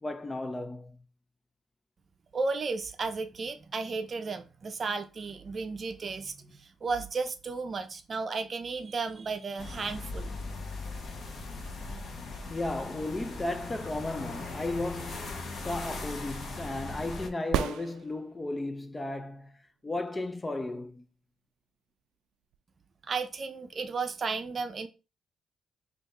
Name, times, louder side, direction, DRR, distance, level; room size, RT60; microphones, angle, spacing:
voice 1, 0.0-1.0 12.5-15.3 15.6-21.1, left 2 dB, 20° left, 0.4 m, -35 dB
voice 2, 2.3-10.3 23.0-24.9, right 4 dB, 40° right, 0.6 m, -34 dB
sound 1, 9.6-17.3, left 3 dB, 45° left, 0.9 m, -39 dB
sound 2, 17.4-18.6 22.5-22.6, right 10 dB, 90° right, 0.3 m, -32 dB
3.4 x 2.5 x 4.1 m
cardioid pair, 90°, 0 cm